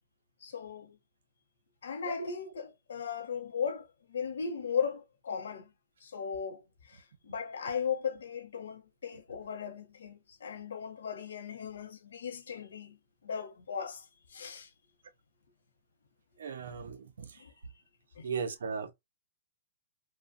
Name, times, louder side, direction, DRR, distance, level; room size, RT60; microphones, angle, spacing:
voice 1, 0.4-1.0 1.8-5.7 6.0-13.0 13.2-14.7 17.4-17.5 18.2-18.3, left 7 dB, 85° left, 0.7 m, -37 dB
voice 2, 16.4-17.4 18.2-18.9, right 6 dB, 85° right, 0.6 m, -37 dB
3.0 x 2.1 x 2.5 m
hypercardioid pair, 155°, 0 cm